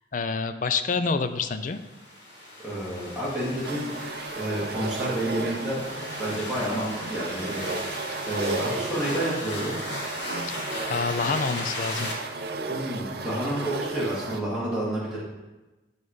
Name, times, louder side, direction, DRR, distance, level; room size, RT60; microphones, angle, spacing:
voice 1, 0.1-1.8 10.9-12.1, left 4 dB, 45° left, 10 dB, 0.4 m, -27 dB
sound 1, 1.7-12.1, left 1 dB, 80° left, 2.7 m, -36 dB
voice 2, 2.6-3.9 4.3-5.8 6.2-9.8 12.7-15.2, right 1 dB, 5° right, -9 dB, 2.6 m, -30 dB
sound 2, 3.6-14.4, right 3 dB, 60° right, 0.5 m, -34 dB
9.3 x 4.1 x 5.0 m, 1.1 s
head